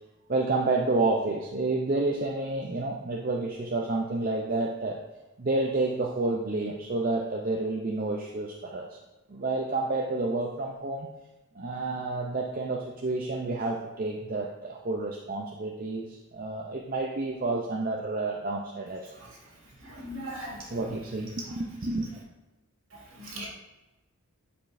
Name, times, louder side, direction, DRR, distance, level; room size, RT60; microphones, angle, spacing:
voice 1, 0.3-5.0 5.4-8.9 9.3-11.1 11.6-19.1 20.7-22.1, right 2 dB, 40° right, 0 dB, 0.6 m, -29 dB
voice 2, 19.9-20.6 23.2-23.5, equal, 60° right, -2 dB, 2.3 m, -37 dB
11.5 x 5.1 x 2.6 m, 1.1 s
head